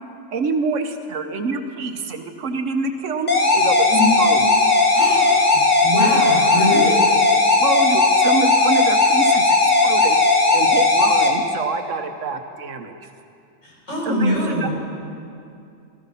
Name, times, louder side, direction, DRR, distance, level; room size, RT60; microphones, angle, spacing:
voice 1, 0.3-3.9 4.2-4.5 6.1-6.2 7.6-10.2 10.5-12.9 14.0-14.7, right 4 dB, 75° right, 6 dB, 1.4 m, -26 dB
sound 1, 3.3-11.3, left 3 dB, 35° left, 1.4 m, -16 dB
voice 2, 4.9-5.2 5.5-7.0 13.6-14.7, left 1 dB, 70° left, -5 dB, 5.5 m, -23 dB
17.5 x 14.5 x 5.7 m, 2.5 s
omnidirectional pair, 1.3 m